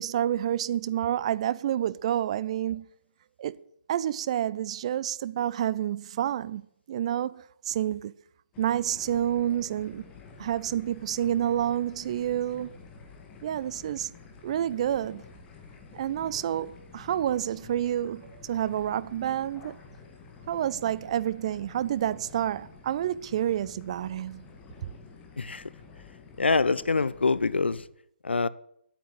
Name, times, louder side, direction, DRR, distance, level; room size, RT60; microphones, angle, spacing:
voice 1, 0.0-2.9 3.4-3.6 3.9-8.1 8.6-10.1 10.4-12.8 13.4-14.1 14.4-15.2 15.9-19.8 20.5-24.5, right 11 dB, 35° right, 0.4 m, -29 dB
sound 1, 8.5-27.8, left 5 dB, 15° left, 1.9 m, -50 dB
voice 2, 26.4-27.8 28.2-28.5, left 4 dB, 75° left, 0.7 m, -25 dB
10.0 x 8.9 x 8.2 m
figure-of-eight pair, 145°, 6 cm